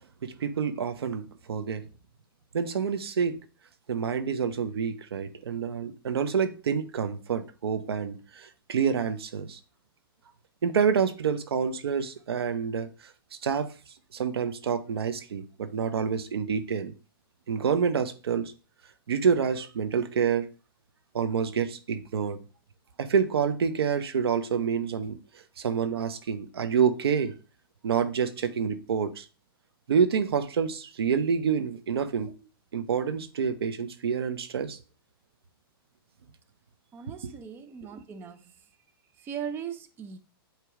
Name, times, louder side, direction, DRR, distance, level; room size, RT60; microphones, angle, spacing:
voice 1, 0.2-1.8 2.5-3.4 3.9-9.6 10.6-13.1 13.4-13.7 14.1-16.9 17.5-18.5 19.1-20.5 21.1-22.4 23.0-25.2 25.6-27.3 27.8-29.3 29.9-32.3 32.7-34.8, right 6 dB, 85° right, 0.8 m, -27 dB
voice 2, 36.9-38.5 39.2-40.2, right 8 dB, 15° right, 0.5 m, -38 dB
8.2 x 3.0 x 4.8 m
hypercardioid pair, 145°, 13 cm